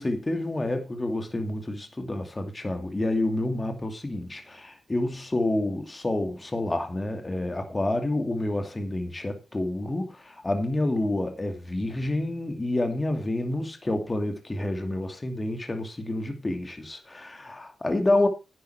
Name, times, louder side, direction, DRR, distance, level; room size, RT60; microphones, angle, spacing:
voice 1, 0.0-18.3, left 1 dB, 20° left, 2.4 m, -28 dB
10.5 x 9.1 x 4.7 m
cardioid pair, 90°, 0 cm